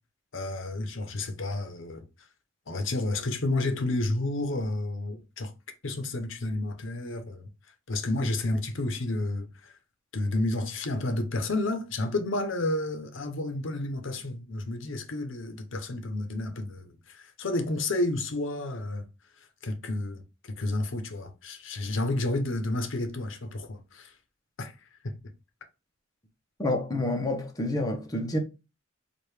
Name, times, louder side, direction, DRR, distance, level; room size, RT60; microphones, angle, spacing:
voice 1, 0.3-2.0 2.7-5.5 5.8-7.5 7.9-9.7 10.1-19.1 19.4-20.2 20.6-24.1 24.6-24.7 25.0-25.1, left 2 dB, 65° left, 0.8 m, -31 dB
voice 2, 26.6-28.4, left 1 dB, 20° left, 0.7 m, -28 dB
4.6 x 2.5 x 3.3 m
head